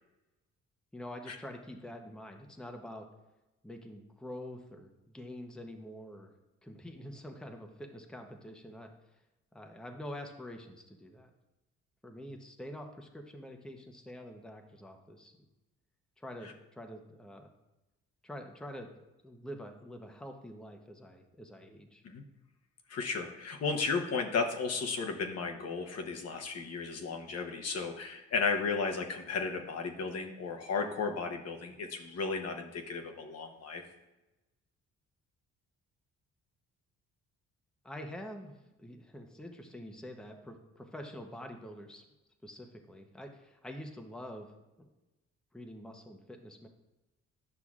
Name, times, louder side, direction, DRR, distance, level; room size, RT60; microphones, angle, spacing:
voice 1, 0.9-3.1 3.6-6.3 6.6-8.9 9.5-11.3 12.0-15.5 16.2-17.5 18.2-18.9 19.2-22.0 37.8-42.0 42.4-44.5 44.8-44.9 45.5-46.7, equal, ahead, 4 dB, 0.7 m, -46 dB
voice 2, 22.9-33.8, left 4 dB, 55° left, 3 dB, 0.9 m, -34 dB
9.8 x 5.8 x 2.4 m, 1.0 s
cardioid pair, 90°, 30 cm